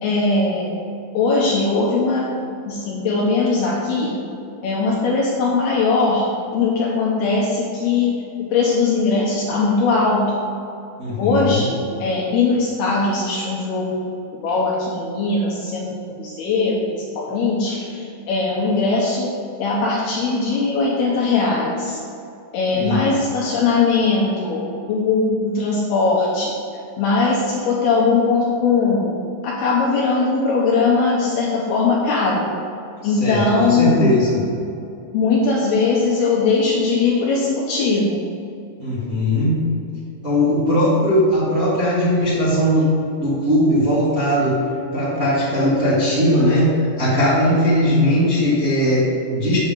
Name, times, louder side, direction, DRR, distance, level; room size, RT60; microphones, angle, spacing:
voice 1, 0.0-0.7 1.1-2.2 2.7-4.1 4.6-6.2 6.5-8.2 8.5-10.3 11.2-13.9 14.4-15.9 16.2-19.3 19.6-22.0 22.5-24.6 24.9-26.5 27.0-29.1 29.4-32.4 33.0-34.1 35.1-38.2, left 4 dB, 75° left, -4 dB, 2.5 m, -20 dB
voice 2, 11.0-11.6 22.7-23.0 33.0-34.4 38.8-39.6 40.2-42.8 43.2-44.6 44.9-49.6, equal, 35° right, -11 dB, 1.3 m, -19 dB
8.6 x 7.0 x 5.2 m, 2.7 s
omnidirectional pair, 5.6 m